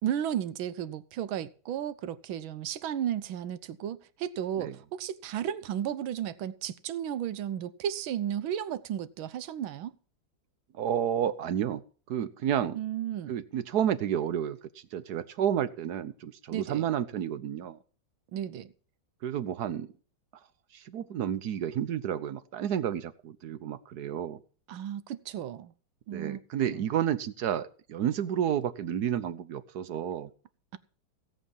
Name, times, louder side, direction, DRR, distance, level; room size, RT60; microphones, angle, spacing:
voice 1, 0.0-9.9 12.7-13.3 16.5-16.8 18.3-18.7 24.7-25.7 26.1-26.4 26.7-26.8, right 10 dB, 75° right, 1.6 m, -34 dB
voice 2, 10.7-11.8 12.1-12.8 13.3-14.6 14.9-17.8 19.2-19.9 20.7-24.4 26.1-30.3, right 9 dB, 60° right, 1.2 m, -31 dB
16.5 x 8.2 x 5.5 m
omnidirectional pair, 2.2 m